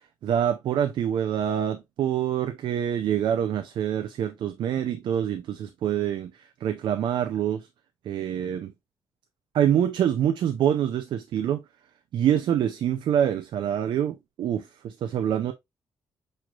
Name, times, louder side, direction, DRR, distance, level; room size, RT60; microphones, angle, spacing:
voice 1, 0.2-6.3 6.6-7.7 8.1-8.7 9.5-11.6 12.1-15.5, right 10 dB, 65° right, 0.4 m, -25 dB
5.9 x 3.1 x 2.4 m
wide cardioid pair, 180°, 9 cm